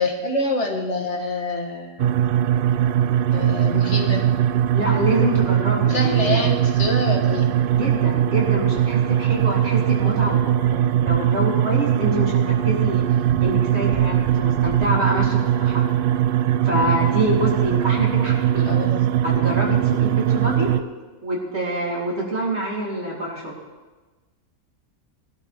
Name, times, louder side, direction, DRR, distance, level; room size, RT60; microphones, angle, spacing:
voice 1, 0.0-2.1 3.3-4.2 5.9-7.5 18.6-19.0, left 2 dB, 55° left, 2 dB, 1.6 m, -26 dB
sound 1, 2.0-20.8, right 11 dB, 80° right, 0.4 m, -20 dB
voice 2, 4.7-6.5 7.8-13.0 13.4-15.9 16.6-18.8 19.2-20.8 21.2-23.5, equal, 50° right, -5 dB, 3.8 m, -26 dB
21.0 x 12.0 x 3.5 m, 1.2 s
omnidirectional pair, 1.5 m